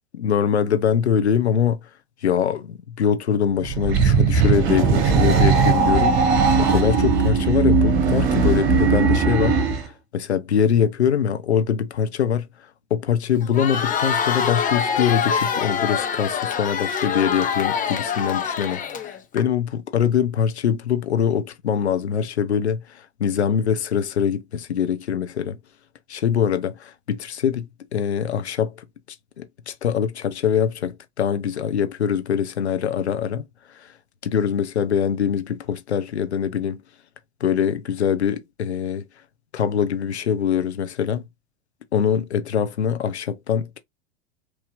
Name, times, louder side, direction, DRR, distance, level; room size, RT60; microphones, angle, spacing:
voice 1, 0.2-1.8 2.2-6.2 6.6-9.6 10.1-12.5 12.9-22.8 23.2-25.6 26.1-28.7 29.4-33.4 33.8-33.9 34.2-36.8 37.4-39.1 39.5-41.2 41.9-43.8, left 8 dB, 85° left, 0.8 m, -23 dB
sound 1, 3.6-9.9, right 5 dB, 55° right, 1.6 m, -18 dB
Crowd, 13.4-19.4, left 7 dB, 25° left, 1.1 m, -25 dB
4.6 x 2.8 x 2.5 m
hypercardioid pair, 90°, 32 cm